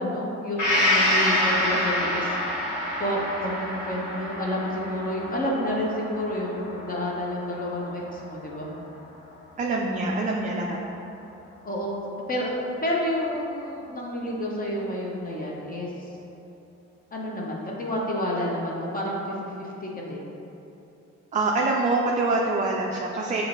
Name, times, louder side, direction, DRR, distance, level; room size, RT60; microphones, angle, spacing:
voice 1, 0.0-2.7 3.0-8.7 11.6-12.5 12.8-16.1 17.1-20.3, equal, 30° left, -4 dB, 0.7 m, -30 dB
Gong, 0.6-8.2 8.6-8.7, left 1 dB, 75° left, 1.1 m, -27 dB
voice 2, 9.6-10.8 21.3-23.4, right 2 dB, 25° right, -1 dB, 0.3 m, -25 dB
6.1 x 2.9 x 2.6 m, 3.0 s
cardioid pair, 90°, 30 cm